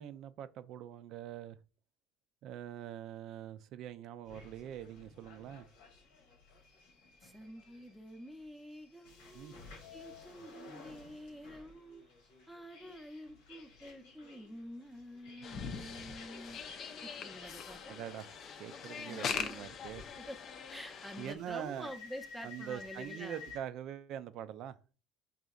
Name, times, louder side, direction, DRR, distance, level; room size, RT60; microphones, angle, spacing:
voice 1, 0.0-1.6 2.4-5.7 9.3-9.5 17.9-18.3 18.6-20.0 21.2-21.9 22.4-24.8, right 10 dB, 65° right, 0.3 m, -44 dB
sound 1, 4.3-23.6, left 4 dB, 85° left, 1.1 m, -55 dB
voice 2, 7.2-12.0 12.5-16.6 17.0-18.0 19.1-19.7 20.1-20.4 20.7-23.5, equal, ahead, 0.6 m, -48 dB
sound 2, 15.4-21.3, left 6 dB, 55° left, 0.5 m, -42 dB
5.0 x 2.7 x 2.4 m
supercardioid pair, 95°, 0 cm